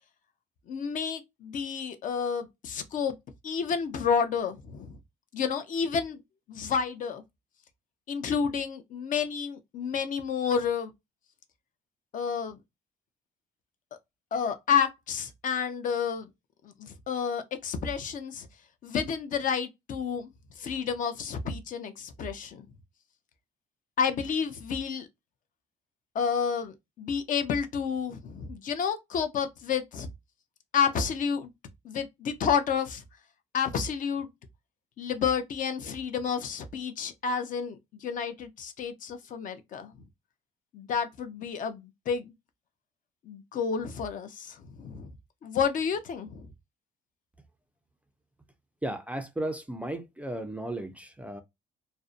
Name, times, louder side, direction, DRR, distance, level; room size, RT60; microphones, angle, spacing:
voice 1, 0.7-3.1 3.4-5.0 5.3-6.2 6.5-7.2 8.1-10.9 12.1-12.6 14.3-16.3 16.6-18.5 18.8-20.3 20.6-22.7 24.0-25.1 26.1-30.1 30.7-31.5 31.8-33.0 33.5-34.3 35.0-39.9 40.7-42.3 43.3-45.1 45.4-46.5, left 6 dB, 50° left, 0.5 m, -30 dB
voice 2, 48.8-51.4, right 1 dB, 10° right, 0.3 m, -35 dB
2.5 x 2.0 x 2.4 m
cardioid pair, 110°, 17 cm